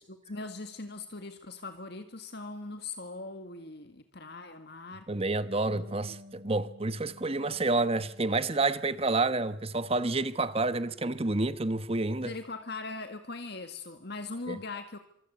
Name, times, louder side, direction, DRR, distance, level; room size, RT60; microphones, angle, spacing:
voice 1, 0.0-5.1 5.7-5.8 12.2-15.0, left 3 dB, 55° left, 1.9 m, -40 dB
voice 2, 5.1-12.3 14.5-14.6, right 2 dB, 30° right, 1.1 m, -29 dB
Bass guitar, 5.7-12.0, left 2 dB, 65° right, 5.5 m, -56 dB
26.5 x 25.0 x 8.2 m
head